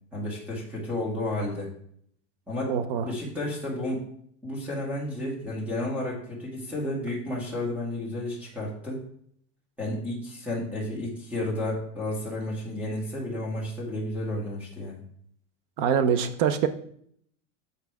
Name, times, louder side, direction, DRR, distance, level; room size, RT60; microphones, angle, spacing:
voice 1, 0.1-1.7 2.5-2.7 3.0-4.0 4.4-9.0 9.8-15.0, left 1 dB, 5° right, -4 dB, 1.7 m, -32 dB
voice 2, 2.7-3.1 15.8-16.7, right 8 dB, 45° right, 11 dB, 0.6 m, -24 dB
8.4 x 4.0 x 4.7 m, 0.65 s
supercardioid pair, 180°, 37 cm